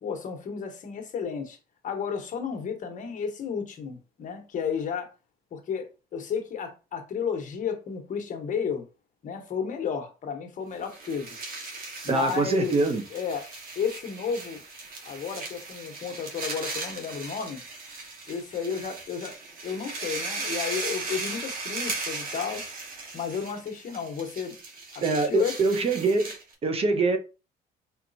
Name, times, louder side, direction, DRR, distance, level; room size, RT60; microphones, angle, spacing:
voice 1, 0.0-1.6 1.8-5.1 5.5-8.8 9.2-11.4 12.0-13.5 13.7-14.6 15.0-17.6 18.3-19.4 19.6-22.6 23.1-24.5 24.9-25.6, left 6 dB, 50° left, 1.2 m, -32 dB
sound 1, 10.8-26.5, right 3 dB, 60° right, 1.6 m, -37 dB
voice 2, 12.1-13.0 25.0-26.3 26.6-27.2, right 3 dB, 35° right, 0.8 m, -24 dB
4.4 x 3.9 x 2.7 m
cardioid pair, 110°, 17 cm